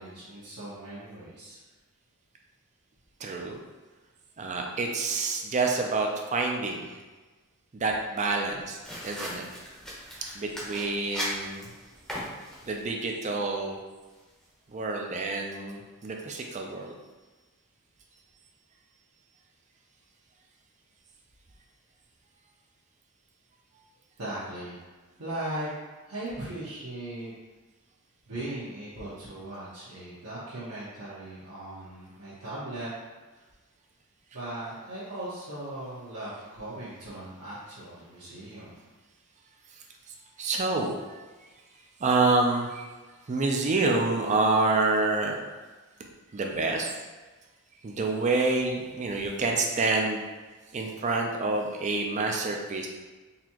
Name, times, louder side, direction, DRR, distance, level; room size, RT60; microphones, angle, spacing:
voice 1, 0.0-1.6 24.2-24.8 25.2-25.7 26.0-27.3 28.3-33.0 34.3-38.8, right 1 dB, 75° right, -12 dB, 1.1 m, -38 dB
voice 2, 3.2-3.6 4.4-6.9 7.7-8.8 9.0-9.5 10.3-11.7 12.6-13.8 14.7-16.9 39.7-39.8 40.4-40.9 42.0-42.9 43.3-45.4 46.3-47.0 47.8-50.2 50.7-52.9, right 3 dB, 30° right, 1 dB, 0.4 m, -27 dB
sound 1, 8.8-12.9, equal, 5° left, 0.7 m, -38 dB
4.0 x 2.8 x 2.9 m, 1.3 s
head